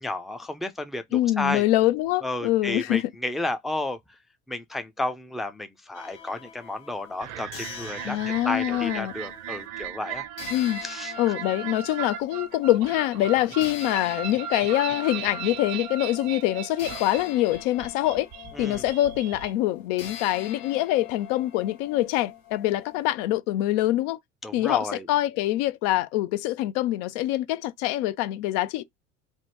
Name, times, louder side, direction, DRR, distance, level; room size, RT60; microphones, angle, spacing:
voice 1, 0.0-1.6 2.2-4.0 4.5-8.2 8.4-11.1 18.6-18.8 24.4-25.1, left 2 dB, ahead, 0.4 m, -32 dB
voice 2, 1.1-3.1 8.0-9.1 10.5-10.8 11.2-18.3 18.6-24.2 24.5-28.8, left 15 dB, 65° left, 0.5 m, -25 dB
sound 1, 5.9-9.7 10.4-23.1, left 9 dB, 85° left, 1.0 m, -44 dB
sound 2, 7.2-19.5, right 9 dB, 65° right, 0.7 m, -37 dB
3.2 x 2.1 x 3.0 m
hypercardioid pair, 75°, 38 cm